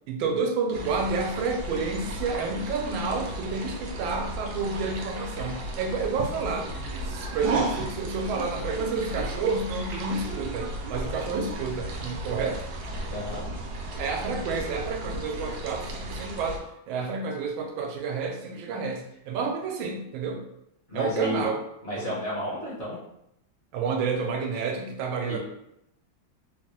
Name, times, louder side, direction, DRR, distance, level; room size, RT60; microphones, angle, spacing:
voice 1, 0.1-6.7 7.0-12.7 14.0-20.4 20.9-21.6 21.9-22.2 23.7-25.4, right 4 dB, 85° right, 3 dB, 1.4 m, -30 dB
sound 1, 0.7-16.6, right 1 dB, 70° right, 1.0 m, -34 dB
voice 2, 13.1-13.4 20.9-21.4 21.8-23.0 25.3-25.4, equal, 45° left, -7 dB, 1.0 m, -31 dB
4.1 x 2.1 x 3.0 m, 0.79 s
omnidirectional pair, 2.1 m